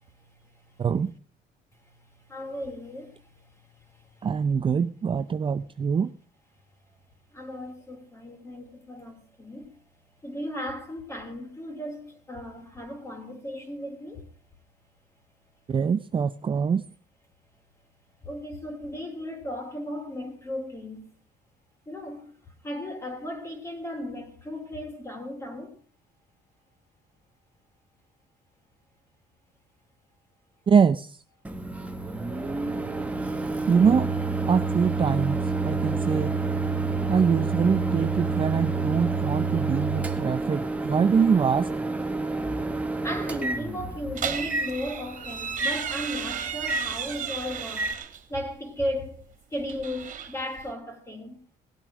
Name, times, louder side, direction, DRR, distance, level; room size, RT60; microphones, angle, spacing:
voice 1, 0.8-1.1 4.2-6.1 15.7-16.8 30.7-31.1 33.7-34.1 34.5-36.3 37.1-41.7, right 6 dB, 30° right, 0.6 m, -24 dB
voice 2, 2.3-3.2 7.3-9.8 10.2-14.3 18.2-21.1 21.9-22.3 22.6-25.7 43.0-48.0 48.3-49.2 49.5-51.4, left 1 dB, 15° left, 3.4 m, -35 dB
Microwave oven, 31.4-47.9, right 3 dB, 10° right, 1.6 m, -29 dB
sound 1, 44.1-48.2 49.5-50.7, right 8 dB, 50° right, 2.2 m, -34 dB
18.0 x 8.7 x 6.2 m
cardioid pair, 110°, 17 cm